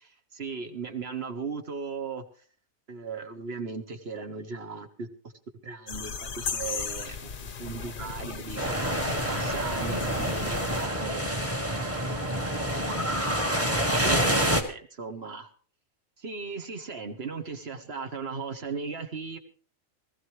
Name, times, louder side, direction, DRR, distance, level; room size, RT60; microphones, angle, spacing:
voice 1, 0.3-2.2 2.9-5.1 5.6-11.2 12.1-12.3 13.8-15.5 16.2-19.4, right 5 dB, 50° right, 7 dB, 1.5 m, -37 dB
sound 1, 5.9-10.9, left 6 dB, 45° left, 0.9 m, -37 dB
sound 2, 8.6-14.6, equal, 10° right, 1.4 m, -27 dB
19.5 x 14.5 x 3.2 m, 0.41 s
omnidirectional pair, 1.4 m